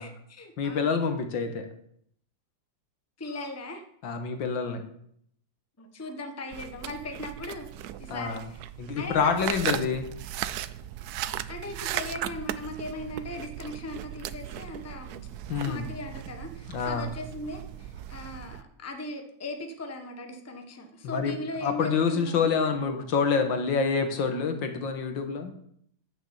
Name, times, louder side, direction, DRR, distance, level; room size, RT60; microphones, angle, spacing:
voice 1, 0.0-0.9 3.2-3.9 5.8-7.7 8.0-8.6 9.0-9.5 11.5-15.3 15.6-23.1, left 2 dB, 10° left, 5 dB, 1.0 m, -38 dB
voice 2, 0.6-1.7 4.0-4.8 8.1-8.4 8.8-10.1 15.5-15.9 16.7-17.1 21.0-21.4 21.6-25.5, left 5 dB, 75° left, 7 dB, 2.0 m, -27 dB
sound 1, 6.5-18.6, right 12 dB, 70° right, 0.9 m, -37 dB
9.9 x 6.4 x 8.1 m, 0.68 s
omnidirectional pair, 2.1 m